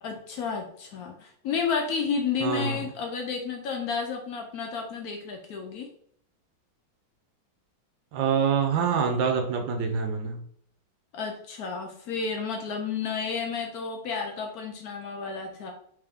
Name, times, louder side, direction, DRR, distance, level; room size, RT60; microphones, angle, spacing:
voice 1, 0.0-5.9 11.1-15.7, left 5 dB, 85° left, 2 dB, 0.8 m, -31 dB
voice 2, 2.4-2.8 8.1-10.4, right 6 dB, 75° right, 4 dB, 1.3 m, -25 dB
3.5 x 3.2 x 3.4 m, 0.63 s
omnidirectional pair, 2.2 m